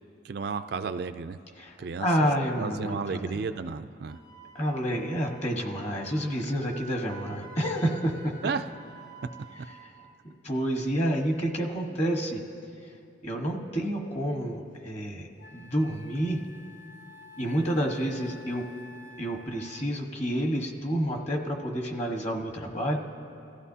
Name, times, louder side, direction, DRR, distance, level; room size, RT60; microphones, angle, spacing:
voice 1, 0.2-1.4 1.8-2.3 2.6-4.2 8.4-8.6, right 5 dB, 55° right, 10 dB, 0.3 m, -33 dB
voice 2, 1.6-3.4 4.5-8.3 9.8-9.9 10.2-12.4 13.2-15.3 15.5-16.4 17.4-18.6 19.2-23.0, equal, 35° left, 2 dB, 1.3 m, -29 dB
Wind instrument woodwind instrument, 4.1-9.9, right 3 dB, 85° left, 2.4 m, -49 dB
Wind instrument woodwind instrument 2, 14.7-14.8 15.4-20.0, left 2 dB, 70° left, 1.1 m, -50 dB
28.5 x 15.0 x 2.8 m, 2.6 s
head